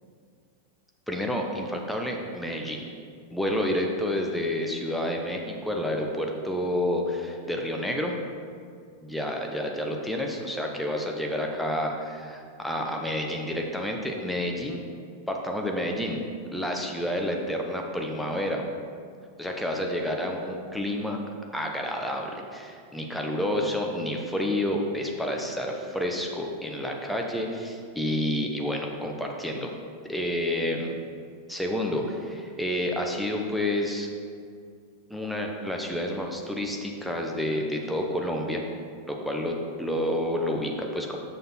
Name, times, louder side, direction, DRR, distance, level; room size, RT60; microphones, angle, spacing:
voice 1, 1.1-2.8 3.3-8.2 9.0-14.8 15.3-16.2 16.5-18.6 19.4-21.2 21.5-29.7 30.1-31.0 31.5-34.1 35.1-38.6 39.1-41.2, left 1 dB, ahead, 1 dB, 0.9 m, -29 dB
6.5 x 6.4 x 4.3 m, 2.2 s
figure-of-eight pair, 90°, 0 cm